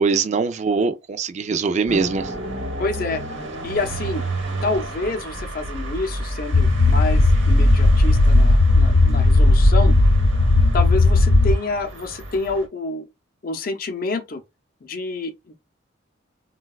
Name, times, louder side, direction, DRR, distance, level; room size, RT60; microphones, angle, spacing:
voice 1, 0.0-2.3, right 4 dB, 35° right, 0.3 m, -22 dB
sound 1, 1.9-12.7, right 1 dB, 70° right, 1.0 m, -32 dB
voice 2, 2.8-3.2 3.6-4.2 4.6-10.0 10.7-13.0 13.4-14.4 14.8-15.5, left 3 dB, 50° left, 0.6 m, -28 dB
sound 2, 6.5-11.6, left 2 dB, 90° left, 0.7 m, -15 dB
3.8 x 2.2 x 2.3 m
head